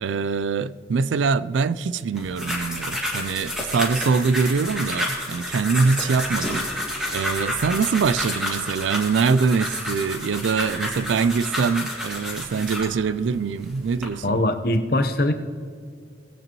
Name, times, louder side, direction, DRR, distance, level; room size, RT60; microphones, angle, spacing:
voice 1, 0.0-6.9 7.1-14.4, right 5 dB, 85° right, 0.4 m, -23 dB
mysound Regenboog Ikram, 2.1-13.0 13.6-14.0, left 1 dB, 5° right, 2.0 m, -30 dB
voice 2, 14.2-15.3, left 1 dB, 55° left, 0.8 m, -21 dB
19.0 x 8.9 x 3.0 m
head